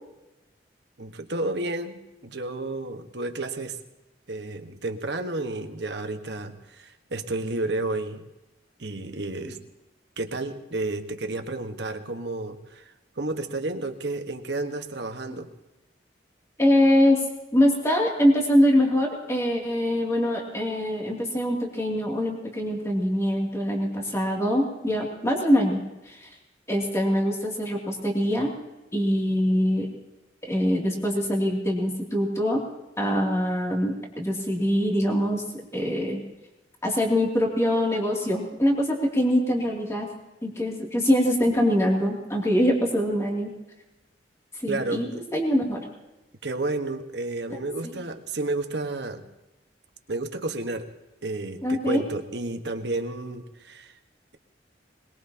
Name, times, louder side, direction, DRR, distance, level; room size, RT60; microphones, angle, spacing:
voice 1, 1.0-3.8 4.3-8.2 8.8-9.6 10.2-15.5 44.7-45.2 46.4-49.2 50.1-50.9 51.2-54.0, right 2 dB, 75° right, 6 dB, 1.4 m, -31 dB
voice 2, 16.6-17.2 17.5-26.3 26.7-28.5 28.9-29.9 30.4-32.6 33.0-35.4 35.7-36.2 36.8-40.1 40.4-43.5 44.6-45.8 47.5-47.6 51.6-52.0, equal, 15° left, -2 dB, 2.7 m, -23 dB
21.5 x 21.5 x 2.9 m, 1.0 s
head